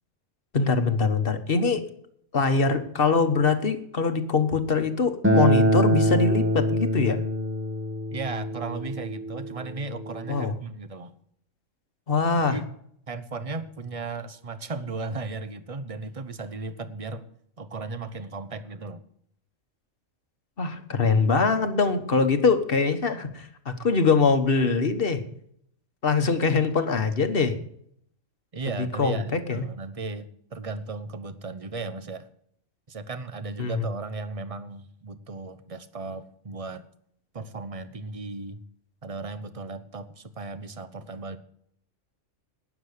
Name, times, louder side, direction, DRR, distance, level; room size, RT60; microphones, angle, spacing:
voice 1, 0.5-1.8 2.3-7.2 10.3-10.5 12.1-12.6 20.6-25.2 26.0-27.5 28.8-29.6 33.6-33.9, left 4 dB, 45° left, 8 dB, 1.4 m, -23 dB
Acoustic guitar, 5.2-10.4, equal, 10° right, 1.1 m, -25 dB
voice 2, 8.1-11.1 12.5-12.6 13.1-17.2 17.6-19.0 28.5-32.3 32.9-36.8 37.3-38.6 39.0-41.4, right 3 dB, 30° right, 12 dB, 0.9 m, -36 dB
12.5 x 9.7 x 6.6 m, 0.67 s
omnidirectional pair, 1.3 m